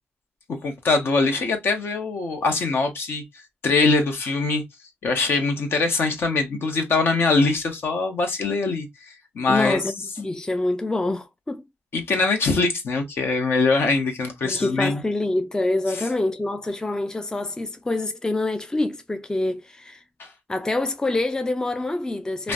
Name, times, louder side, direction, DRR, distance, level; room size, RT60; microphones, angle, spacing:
voice 1, 0.5-3.2 3.6-4.6 5.0-9.8 11.9-15.0 20.2-20.3 22.4-22.5, left 3 dB, 70° left, 0.9 m, -23 dB
voice 2, 9.5-11.6 14.4-20.0 20.5-22.5, left 2 dB, 15° left, 0.4 m, -26 dB
3.1 x 2.1 x 2.4 m
cardioid pair, 70°, 4 cm